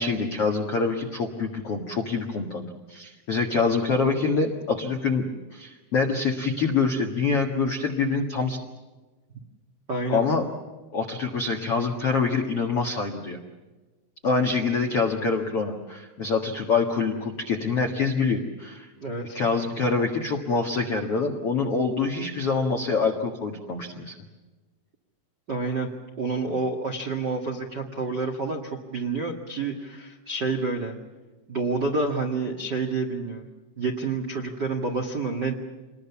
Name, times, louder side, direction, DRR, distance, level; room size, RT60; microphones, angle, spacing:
voice 1, 0.0-5.2 5.5-8.6 10.1-10.5 10.9-13.4 14.2-18.9 19.3-24.1, left 4 dB, 65° left, 2 dB, 1.4 m, -25 dB
voice 2, 9.9-10.2 19.0-19.4 25.5-25.9 26.2-30.9 31.5-33.5 33.8-35.5, right 3 dB, 65° right, 2 dB, 1.0 m, -28 dB
27.5 x 21.5 x 7.2 m, 1.2 s
omnidirectional pair, 5.6 m